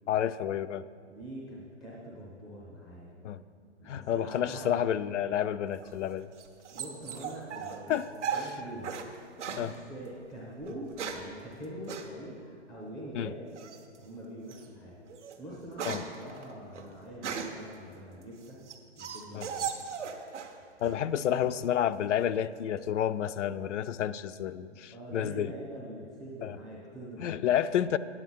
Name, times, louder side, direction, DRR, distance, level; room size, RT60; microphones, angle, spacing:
voice 1, 0.1-0.8 3.2-3.4 3.9-6.3 7.9-8.5 9.6-9.7 13.1-13.3 15.8-16.0 19.3-19.5 20.8-25.5 26.4-26.6 27.2-28.0, left 10 dB, 80° left, 13 dB, 0.5 m, -30 dB
voice 2, 1.1-3.1 3.8-4.8 6.7-8.9 9.5-13.3 14.0-18.6 19.0-19.7 24.7-27.3, right 1 dB, ahead, -5 dB, 0.4 m, -44 dB
sound 1, 5.8-9.1 9.4-9.7 10.6-11.3 11.9-12.1 13.6-14.0 14.5-14.7 15.1-17.7 18.2-20.6 20.8-21.4, right 6 dB, 75° right, 1.2 m, -37 dB
9.5 x 8.2 x 5.5 m, 2.4 s
hypercardioid pair, 160°, 36 cm